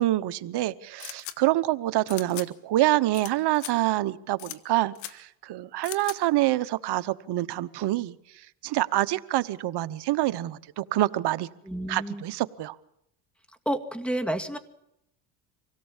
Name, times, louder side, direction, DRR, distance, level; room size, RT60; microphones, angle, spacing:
voice 1, 0.0-8.2 8.6-11.5 11.9-12.7, right 16 dB, 55° right, 14 dB, 1.1 m, -26 dB
sound 1, 1.0-1.3 2.1-2.5 3.1-3.3 3.5-3.7 4.4-4.6 4.9-5.1 5.8-6.2, left 15 dB, 80° left, 1.5 m, -38 dB
voice 2, 11.6-12.3 13.7-14.6, right 1 dB, ahead, 8 dB, 2.0 m, -30 dB
25.0 x 17.5 x 7.3 m, 0.79 s
supercardioid pair, 90°, 47 cm